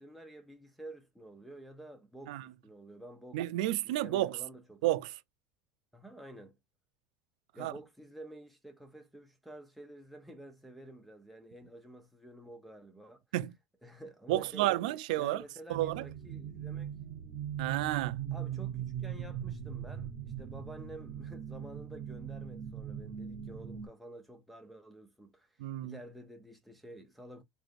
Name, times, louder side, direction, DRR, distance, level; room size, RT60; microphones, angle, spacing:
voice 1, 0.0-3.4 3.8-4.8 5.9-6.6 7.5-13.2 13.8-14.7 15.2-16.9 18.3-25.5 25.8-27.4, right 1 dB, ahead, 0.5 m, -50 dB
voice 2, 3.3-4.4 4.8-5.1 7.6-7.7 13.3-13.6 14.3-15.4 15.7-16.0 17.6-18.2 25.6-26.0, right 15 dB, 80° right, 0.4 m, -31 dB
sound 1, 15.7-23.9, right 9 dB, 55° right, 0.9 m, -40 dB
4.6 x 2.5 x 2.5 m
cardioid pair, 180°, 4 cm